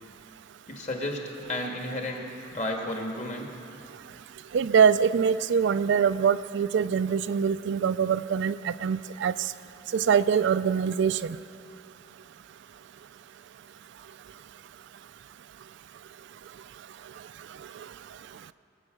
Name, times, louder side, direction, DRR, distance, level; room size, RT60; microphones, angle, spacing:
voice 1, 0.7-2.2 2.5-3.6, left 1 dB, 35° left, 1 dB, 1.7 m, -32 dB
voice 2, 4.5-9.3 9.9-11.4, right 7 dB, 60° right, 13 dB, 0.3 m, -24 dB
21.0 x 8.5 x 6.4 m, 2.6 s
head